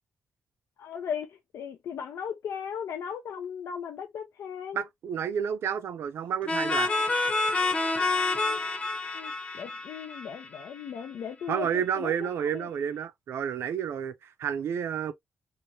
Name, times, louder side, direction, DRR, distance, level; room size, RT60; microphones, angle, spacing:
voice 1, 0.8-4.8 8.3-8.6 9.1-12.3 12.5-12.7, left 7 dB, 90° left, 0.5 m, -37 dB
voice 2, 4.7-6.9 11.5-15.1, right 8 dB, 70° right, 0.4 m, -30 dB
sound 1, 6.5-11.0, left 3 dB, 25° left, 0.6 m, -28 dB
2.9 x 2.5 x 2.8 m
wide cardioid pair, 165°, 4 cm